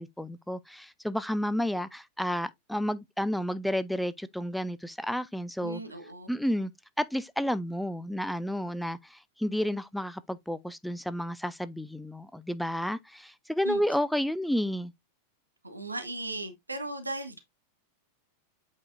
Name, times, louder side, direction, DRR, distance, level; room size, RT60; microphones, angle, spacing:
voice 1, 0.0-5.8 6.3-6.7 7.0-14.9, equal, ahead, 0.5 m, -31 dB
voice 2, 5.6-6.3 13.6-13.8 15.6-17.4, right 2 dB, 80° right, 1.3 m, -37 dB
8.3 x 4.9 x 2.6 m
figure-of-eight pair, 90°, 0 cm